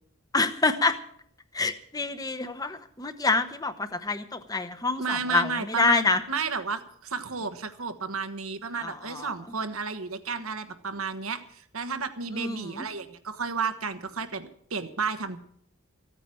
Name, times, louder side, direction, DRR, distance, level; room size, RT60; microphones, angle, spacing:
voice 1, 0.3-1.0 1.5-6.2 8.7-9.3 12.3-12.9, left 3 dB, 15° left, 10 dB, 0.9 m, -27 dB
voice 2, 5.0-15.4, right 5 dB, 85° right, 10 dB, 1.3 m, -32 dB
15.0 x 9.0 x 7.7 m, 0.67 s
head